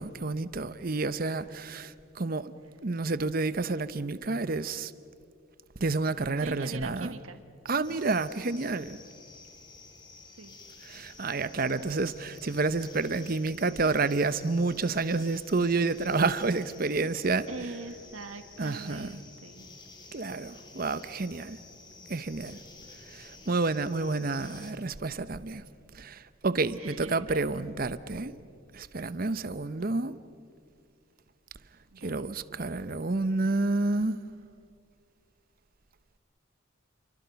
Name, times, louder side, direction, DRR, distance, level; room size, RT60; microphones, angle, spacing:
voice 1, 0.0-2.5 2.8-4.9 5.8-7.1 7.7-9.0 10.9-17.5 18.6-19.1 20.1-21.6 22.1-22.6 23.1-25.6 25.9-28.3 28.7-30.2 32.0-34.2, right 3 dB, 45° right, 0.8 m, -29 dB
voice 2, 6.4-7.4 7.9-8.2 10.2-10.6 17.5-19.7 26.7-27.6 31.9-32.3, right 3 dB, 90° right, 1.3 m, -43 dB
sound 1, 7.8-24.7, left 3 dB, 20° left, 2.5 m, -51 dB
30.0 x 24.0 x 5.9 m
head